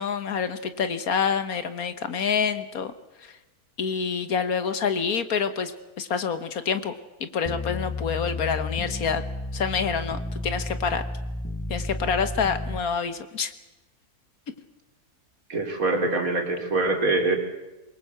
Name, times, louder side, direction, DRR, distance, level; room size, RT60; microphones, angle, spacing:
voice 1, 0.0-2.9 3.2-3.3 3.8-5.7 6.0-6.9 7.2-9.2 9.5-11.0 11.7-13.5, left 6 dB, 70° left, 11 dB, 1.7 m, -27 dB
sound 1, 7.4-12.8, left 2 dB, 15° left, 0.5 m, -32 dB
voice 2, 15.5-17.4, right 2 dB, 65° right, 4 dB, 3.5 m, -24 dB
24.0 x 21.5 x 8.0 m, 1.0 s
omnidirectional pair, 1.6 m